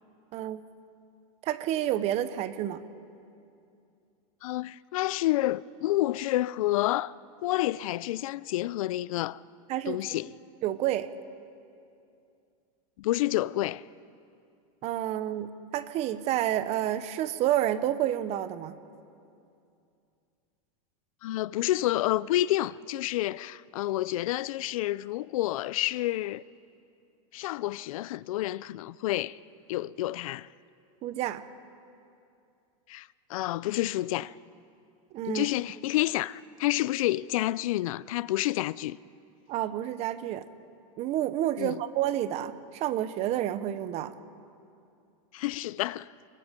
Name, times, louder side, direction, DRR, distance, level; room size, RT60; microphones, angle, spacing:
voice 1, 0.3-0.6 1.4-2.9 9.7-10.0 10.6-11.1 14.8-18.8 31.0-31.4 35.1-35.5 39.5-40.4 41.0-44.1, right 12 dB, 35° right, 1.0 m, -29 dB
voice 2, 4.4-7.1 7.4-9.4 9.9-10.3 13.0-13.8 21.2-26.4 27.3-29.4 29.7-30.5 32.9-34.3 35.3-39.0 41.6-41.8 45.3-46.1, left 15 dB, 75° left, 0.5 m, -29 dB
27.0 x 22.0 x 5.2 m
supercardioid pair, 145°, 18 cm